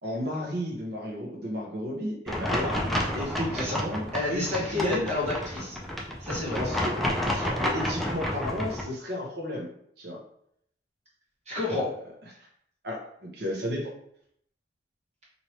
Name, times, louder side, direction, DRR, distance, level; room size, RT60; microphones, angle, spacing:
voice 1, 0.0-4.0 4.3-5.1 6.6-9.7 10.0-10.2 12.8-13.9, equal, 60° right, 0 dB, 0.9 m, -33 dB
sound 1, 2.3-8.8, left 1 dB, ahead, 0.4 m, -30 dB
voice 2, 4.1-5.8 6.2-6.6 11.5-11.9, left 2 dB, 35° right, -7 dB, 1.1 m, -29 dB
2.9 x 2.6 x 3.1 m, 0.70 s
head